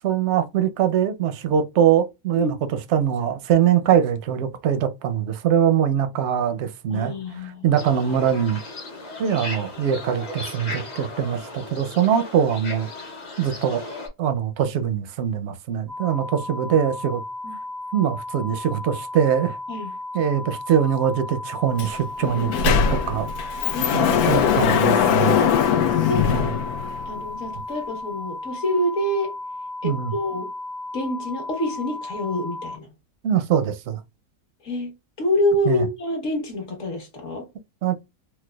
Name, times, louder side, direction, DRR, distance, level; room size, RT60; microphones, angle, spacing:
voice 1, 0.0-2.6 2.9-8.6 9.2-12.9 13.4-13.8 14.2-17.2 17.9-19.6 20.1-23.3 23.9-25.4 26.3-26.6 29.8-30.1 33.2-34.0 35.6-35.9 37.8-38.0, right 9 dB, 65° right, 0.7 m, -22 dB
voice 2, 6.9-7.6 9.3-9.5 17.4-17.6 19.7-19.9 23.7-24.5 26.1-26.5 27.1-29.3 29.8-30.5 30.9-32.9 34.6-37.5, left 1 dB, 60° left, 1.5 m, -27 dB
sound 1, 7.7-14.1, left 2 dB, 40° left, 0.7 m, -36 dB
sound 2, 15.9-32.7, left 2 dB, 25° right, 0.5 m, -34 dB
Sliding door, 21.8-21.9 22.2-27.2, left 8 dB, 80° left, 1.1 m, -21 dB
4.4 x 2.1 x 2.2 m
omnidirectional pair, 1.6 m